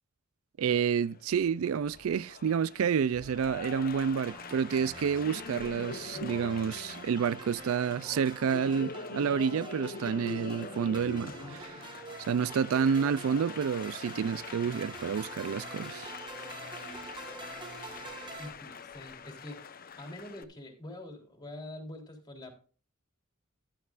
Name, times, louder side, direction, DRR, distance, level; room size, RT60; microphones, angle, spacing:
voice 1, 0.6-11.8 12.3-16.1, right 7 dB, 75° right, 0.4 m, -29 dB
Applause, 0.7-20.4, left 4 dB, 45° left, 0.9 m, -44 dB
sound 1, 4.3-18.5, right 3 dB, 20° right, 1.6 m, -47 dB
voice 2, 5.9-6.2 18.4-19.6 20.0-22.5, left 1 dB, 20° left, 3.5 m, -45 dB
14.0 x 11.5 x 2.5 m
head